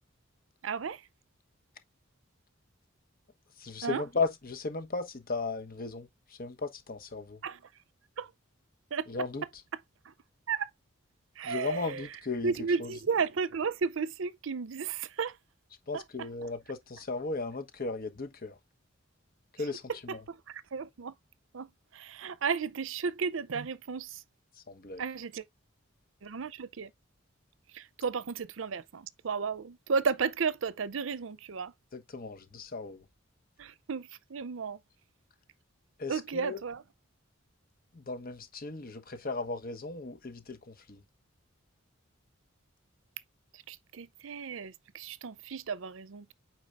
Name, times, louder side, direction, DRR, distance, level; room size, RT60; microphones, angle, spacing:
voice 1, 0.6-1.1 3.8-4.0 7.4-7.6 8.2-8.3 8.9-9.1 10.0-10.1 10.5-10.7 11.4-12.1 12.4-15.4 15.9-16.3 20.1-21.1 21.5-24.2 25.0-25.5 26.2-26.9 27.7-31.7 33.6-34.8 36.1-36.8 43.5-46.3, right 5 dB, 70° right, 0.6 m, -34 dB
voice 2, 3.6-7.4 9.1-9.4 11.4-12.5 12.8-12.9 15.9-18.6 19.5-20.2 24.5-25.0 31.9-33.0 36.0-36.6 37.9-41.0, left 3 dB, 45° left, 1.2 m, -36 dB
8.6 x 4.7 x 2.5 m
head